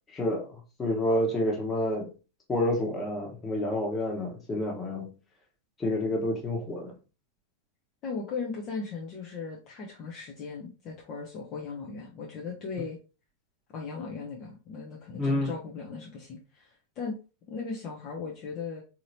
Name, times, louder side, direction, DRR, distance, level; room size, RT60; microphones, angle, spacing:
voice 1, 0.1-2.1 2.5-5.1 5.8-6.9 15.2-15.5, left 1 dB, 20° left, -1 dB, 1.2 m, -29 dB
voice 2, 8.0-13.0 13.7-17.2 17.5-18.8, left 4 dB, 35° left, -2 dB, 0.7 m, -37 dB
4.0 x 2.8 x 2.7 m, 0.33 s
figure-of-eight pair, 90°, 0 cm